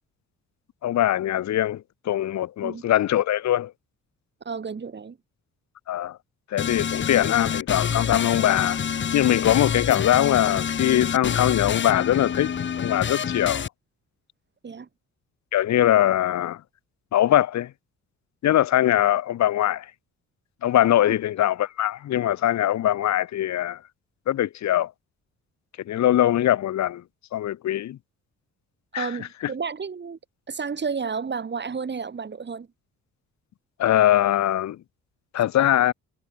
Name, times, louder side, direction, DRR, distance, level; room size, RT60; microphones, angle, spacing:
voice 1, 0.8-3.7 5.9-6.2 6.5-8.8 9.1-13.6 15.5-16.6 17.1-17.7 18.4-19.9 20.6-23.8 24.3-24.9 25.9-27.0 27.3-28.0 28.9-29.1 33.8-34.8 35.3-35.9, left 12 dB, 65° left, 1.3 m, -22 dB
voice 2, 4.4-5.2 14.6-14.9 21.1-21.2 29.0-30.2 30.5-32.7, right 5 dB, 35° right, 4.8 m, -31 dB
sound 1, 6.6-13.7, left 7 dB, 40° left, 1.1 m, -27 dB
cardioid pair, 90°, 30 cm